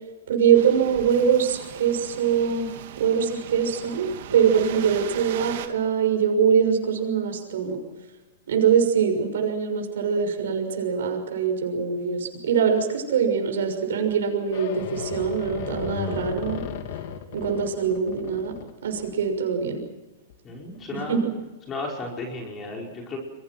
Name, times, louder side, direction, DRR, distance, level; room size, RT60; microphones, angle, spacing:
voice 1, 0.3-7.8 8.5-16.6 17.3-18.5 18.8-19.8 20.9-21.3, right 7 dB, 80° right, 4 dB, 6.4 m, -23 dB
sound 1, 0.5-5.7, right 11 dB, 60° right, 2.6 m, -38 dB
sound 2, 14.5-19.5 20.3-20.4 20.8-21.0, left 8 dB, 55° left, 3.2 m, -34 dB
voice 2, 20.4-21.2 21.7-23.2, left 3 dB, 20° left, 0 dB, 5.2 m, -34 dB
29.0 x 23.5 x 6.1 m, 1.1 s
supercardioid pair, 155°, 0 cm